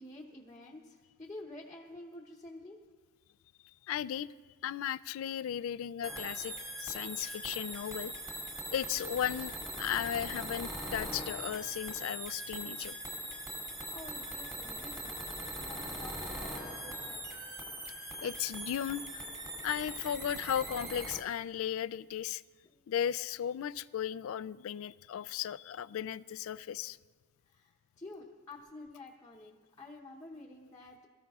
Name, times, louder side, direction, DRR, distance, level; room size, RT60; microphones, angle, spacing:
voice 1, 0.0-2.8 13.6-13.7 13.9-15.3 15.6-17.5 22.6-22.9 27.4-31.1, left 2 dB, 15° left, -4 dB, 0.9 m, -50 dB
voice 2, 3.9-4.3 4.6-8.1 8.7-13.0 18.2-19.3 19.6-22.4 22.9-27.0, left 9 dB, 65° left, 18 dB, 0.3 m, -36 dB
sound 1, 6.0-21.2, right 1 dB, 15° right, 2.0 m, -41 dB
22.5 x 13.5 x 2.4 m, 1.5 s
head